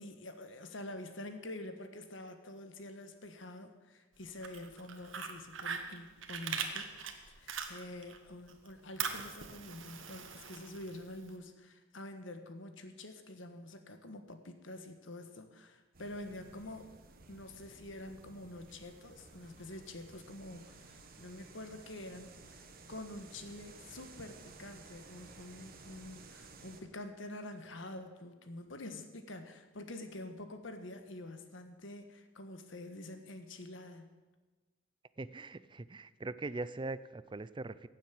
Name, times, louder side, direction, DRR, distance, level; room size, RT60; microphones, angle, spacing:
voice 1, 0.0-6.9 7.3-16.9 17.3-34.1, left 1 dB, 70° left, 7 dB, 1.5 m, -47 dB
Fire, 4.2-8.2 8.5-11.3, right 6 dB, 80° right, 1.4 m, -41 dB
sound 1, 15.9-26.8, right 3 dB, 50° right, 1.4 m, -55 dB
voice 2, 35.2-37.9, right 3 dB, 25° right, 16 dB, 0.5 m, -41 dB
15.5 x 7.4 x 8.5 m, 1.3 s
head